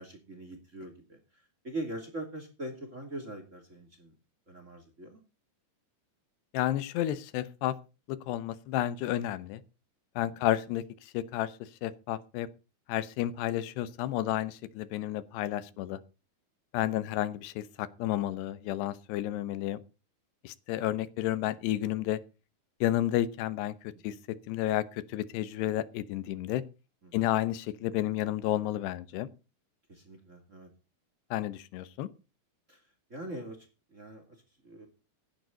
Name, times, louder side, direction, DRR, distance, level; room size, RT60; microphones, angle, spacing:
voice 1, 0.0-4.1 4.5-5.2 10.2-10.3 16.8-17.1 23.9-24.0 27.0-27.2 29.9-30.7 32.7-32.8 33.1-34.9, right 1 dB, 20° right, 2.5 m, -42 dB
voice 2, 6.5-7.8 8.1-9.6 10.2-12.5 12.9-16.0 16.7-19.8 20.4-22.2 22.8-23.7 24.0-26.6 27.1-29.3 31.3-32.1, left 13 dB, 85° left, 3.1 m, -31 dB
16.0 x 10.5 x 4.0 m
omnidirectional pair, 4.7 m